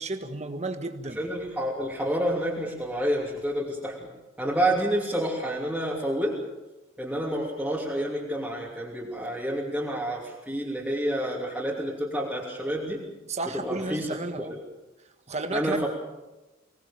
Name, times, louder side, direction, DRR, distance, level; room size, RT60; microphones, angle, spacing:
voice 1, 0.0-1.2 13.3-14.5 15.3-15.9, right 2 dB, 35° right, 6 dB, 1.7 m, -32 dB
voice 2, 1.2-4.1 4.4-6.4 7.0-13.0 13.5-14.5 15.5-15.9, right 1 dB, 5° right, -5 dB, 3.0 m, -29 dB
25.0 x 19.0 x 7.2 m, 1.1 s
head